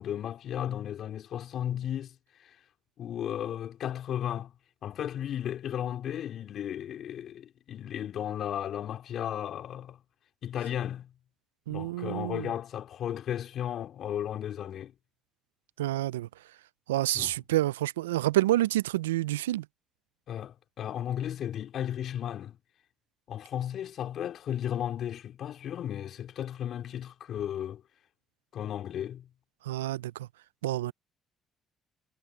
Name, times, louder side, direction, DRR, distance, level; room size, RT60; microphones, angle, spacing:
voice 1, 0.0-2.6 3.0-4.5 4.8-10.0 10.4-11.1 11.7-14.9 17.1-17.3 20.3-22.6 23.3-27.8 28.5-29.3, left 10 dB, 60° left, 3.9 m, -35 dB
voice 2, 11.7-12.5 15.8-16.3 16.9-19.6 29.7-30.3 30.6-30.9, right 15 dB, 90° right, 0.4 m, -28 dB
hypercardioid pair, 55°, 0 cm